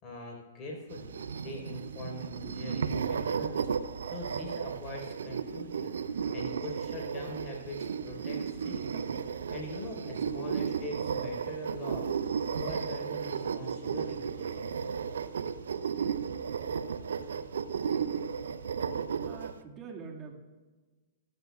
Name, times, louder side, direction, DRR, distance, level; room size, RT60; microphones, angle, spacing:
voice 1, 0.0-3.7 4.1-6.0 6.3-9.1 9.5-12.0 12.3-14.7, left 1 dB, 30° left, 0 dB, 4.2 m, -42 dB
sound 1, 0.9-19.6, right 6 dB, 75° right, 0.5 m, -34 dB
voice 2, 19.2-20.3, right 5 dB, 25° right, 1 dB, 2.0 m, -45 dB
14.0 x 13.5 x 2.4 m, 1.3 s
hypercardioid pair, 120°, 0 cm